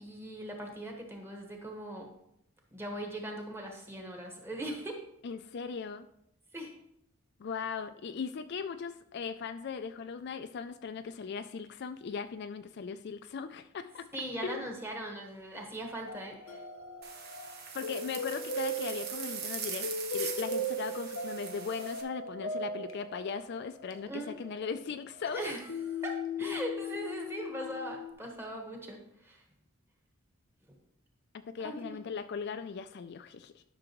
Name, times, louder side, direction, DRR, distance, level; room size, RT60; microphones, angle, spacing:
voice 1, 0.0-2.1 2.7-5.0 6.5-6.7 14.1-16.6 24.0-24.3 25.3-29.4 30.7-30.8 31.6-32.0, right 1 dB, 10° right, 1 dB, 1.3 m, -40 dB
voice 2, 5.2-6.1 7.4-14.1 14.4-14.7 17.7-25.5 26.4-26.6 31.5-33.6, left 6 dB, 50° left, 9 dB, 0.4 m, -38 dB
sound 1, 16.1-28.1, equal, 70° left, 0.8 m, -39 dB
sound 2, 17.0-22.0, right 6 dB, 50° right, 1.1 m, -41 dB
11.5 x 6.1 x 3.0 m, 0.76 s
head